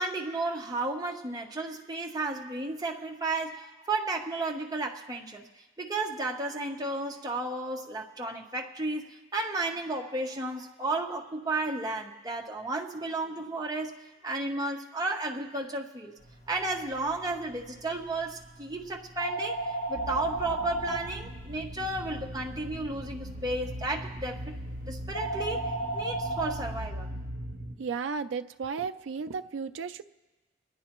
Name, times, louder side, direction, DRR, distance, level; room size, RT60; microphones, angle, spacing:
voice 1, 0.0-5.4 5.8-13.9 14.2-16.1 16.5-19.6 19.9-24.6 24.9-27.1, right 2 dB, 20° right, 0 dB, 0.9 m, -33 dB
sound 1, 16.2-26.5, right 1 dB, 45° left, 5.3 m, -37 dB
sound 2, 20.0-27.7, equal, 65° right, 0.8 m, -39 dB
voice 2, 27.8-30.0, right 5 dB, 90° right, 11 dB, 0.4 m, -34 dB
26.5 x 10.5 x 3.0 m, 1.2 s
head